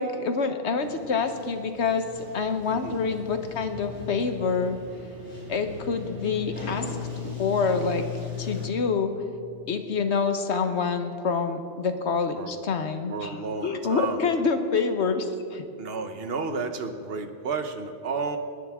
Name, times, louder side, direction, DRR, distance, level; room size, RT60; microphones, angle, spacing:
voice 1, 0.0-4.8 5.5-6.8 7.4-8.0 8.4-9.1 9.7-15.6, left 5 dB, 80° left, 7 dB, 1.3 m, -27 dB
Sliding door, 0.8-8.7, left 6 dB, 10° left, 4.2 m, -38 dB
voice 2, 13.1-14.2 15.8-18.4, right 4 dB, 60° right, 7 dB, 1.2 m, -32 dB
27.5 x 11.0 x 3.6 m, 2.4 s
omnidirectional pair, 1.1 m